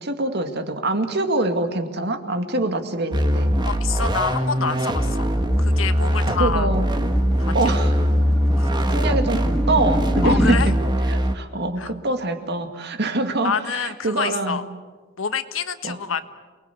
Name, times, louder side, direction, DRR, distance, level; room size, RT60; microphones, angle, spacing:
voice 1, 0.0-3.5 6.4-6.9 7.5-8.0 8.9-10.7 11.1-14.6 15.8-16.0, right 2 dB, 55° right, 7 dB, 2.3 m, -25 dB
sound 1, 3.1-11.4, equal, 20° right, 1.6 m, -21 dB
voice 2, 3.6-5.3 5.6-6.7 7.4-7.8 8.6-8.9 10.2-10.7 11.8-11.9 13.4-14.6 15.2-16.2, left 5 dB, 90° left, 11 dB, 1.4 m, -27 dB
sound 2, 4.5-10.6, equal, 5° left, 2.2 m, -28 dB
28.5 x 20.5 x 8.4 m, 1.4 s
head